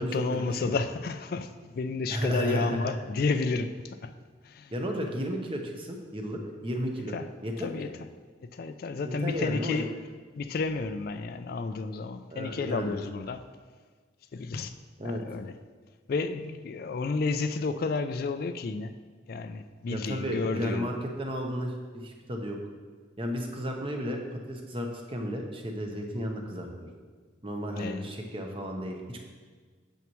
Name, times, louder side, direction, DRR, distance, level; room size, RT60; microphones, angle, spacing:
voice 1, 0.0-4.1 4.4-4.7 7.1-7.3 7.6-7.9 8.4-9.9 10.4-13.4 14.3-14.8 15.0-15.5 16.1-18.9 19.3-20.9 27.7-28.1, left 4 dB, 50° left, 10 dB, 0.3 m, -31 dB
voice 2, 2.1-2.9 4.7-7.7 9.0-9.8 12.3-12.9 15.0-15.2 19.9-22.6 23.2-26.7 27.4-29.2, equal, 25° right, 2 dB, 0.9 m, -33 dB
9.2 x 7.1 x 3.1 m, 1.5 s
head